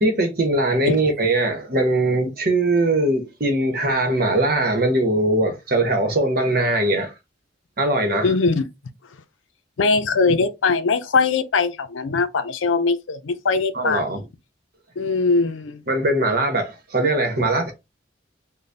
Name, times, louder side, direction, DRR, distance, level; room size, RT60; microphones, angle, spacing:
voice 1, 0.0-7.1 7.8-8.3 13.7-14.2 15.9-17.7, right 2 dB, 50° right, 1.0 m, -21 dB
voice 2, 8.2-8.7 9.8-14.2 15.0-15.8, left 4 dB, 85° left, 0.5 m, -21 dB
4.0 x 2.2 x 3.3 m
head